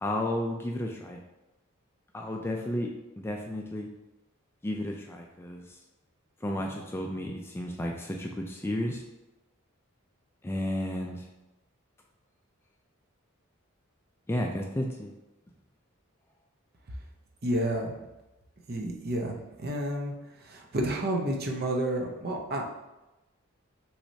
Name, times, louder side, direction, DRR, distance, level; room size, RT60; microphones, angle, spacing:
voice 1, 0.0-1.2 2.1-3.9 4.6-5.8 6.4-9.0 10.4-11.3 14.3-15.1, left 1 dB, 10° left, 0 dB, 0.3 m, -32 dB
voice 2, 17.4-17.9 18.7-20.1 20.4-22.7, right 1 dB, 45° right, 1 dB, 0.7 m, -30 dB
6.0 x 3.2 x 2.7 m, 1.0 s
head